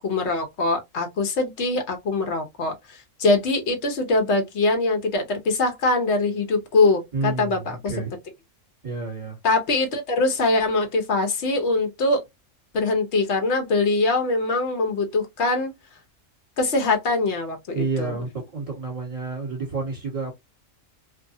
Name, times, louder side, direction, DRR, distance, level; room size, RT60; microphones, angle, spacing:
voice 1, 0.0-7.9 9.4-12.2 12.7-15.7 16.6-18.1, left 3 dB, 60° left, 1.1 m, -23 dB
voice 2, 7.1-8.1 8.8-9.4 17.7-20.3, right 3 dB, 25° right, 1.6 m, -29 dB
2.6 x 2.5 x 2.5 m
omnidirectional pair, 1.3 m